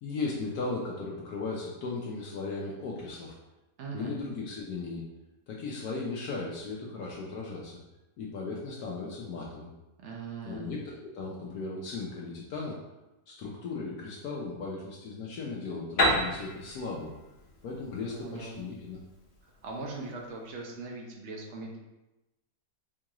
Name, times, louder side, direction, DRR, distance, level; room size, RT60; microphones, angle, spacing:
voice 1, 0.0-3.4 3.9-5.0 5.5-7.8 8.2-9.7 10.4-12.8 13.3-17.1 17.6-19.0, left 3 dB, 70° left, -3 dB, 1.1 m, -36 dB
voice 2, 3.8-4.1 10.0-10.7 18.1-18.6 19.6-21.8, right 3 dB, 60° right, -1 dB, 0.8 m, -40 dB
Piano, 16.0-19.6, equal, 50° left, 0.9 m, -31 dB
4.6 x 2.4 x 2.9 m, 0.99 s
omnidirectional pair, 1.8 m